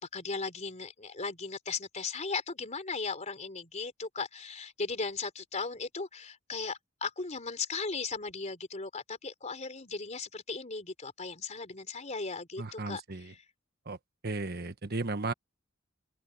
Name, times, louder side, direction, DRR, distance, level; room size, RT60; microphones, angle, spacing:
voice 1, 0.0-13.4, left 4 dB, 35° left, 3.6 m, -37 dB
voice 2, 12.6-13.3 13.9-14.0 14.2-15.3, right 3 dB, 55° right, 1.3 m, -35 dB
head